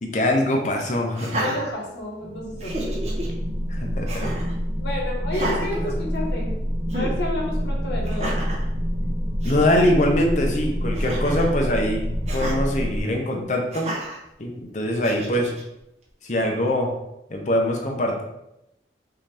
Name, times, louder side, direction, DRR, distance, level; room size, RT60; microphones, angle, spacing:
voice 1, 0.0-1.4 3.7-4.3 9.4-12.0 12.3-13.9 14.4-15.5 16.2-16.9 17.3-18.2, left 1 dB, 45° left, 2 dB, 0.7 m, -23 dB
Laughter, 1.1-2.2 2.6-3.3 4.1-4.5 5.3-6.5 6.9-7.2 8.0-8.6 9.1-9.2 9.4-9.8 10.9-11.5 12.3-12.6 13.7-14.2 15.0-15.6, right 1 dB, 40° right, 0.8 m, -31 dB
voice 2, 1.3-3.1 4.8-6.5 6.9-8.4, left 1 dB, 80° left, -1 dB, 1.4 m, -30 dB
sound 1, 2.2-13.0, equal, 10° right, 0.8 m, -27 dB
5.5 x 2.8 x 3.4 m, 0.84 s
head